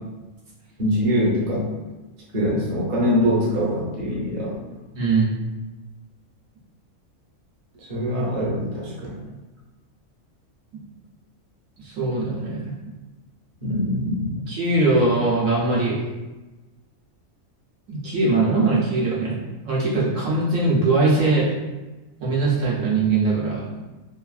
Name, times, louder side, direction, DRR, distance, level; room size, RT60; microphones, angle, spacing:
voice 1, 0.8-1.7 2.3-4.5 7.8-9.2 13.6-14.4, equal, 40° right, -5 dB, 0.7 m, -23 dB
voice 2, 4.9-5.3 11.8-12.7 14.5-16.0 17.9-19.4 19.6-21.5 22.2-23.6, right 3 dB, 75° right, -5 dB, 1.1 m, -21 dB
3.0 x 2.4 x 2.3 m, 1.1 s
omnidirectional pair, 1.4 m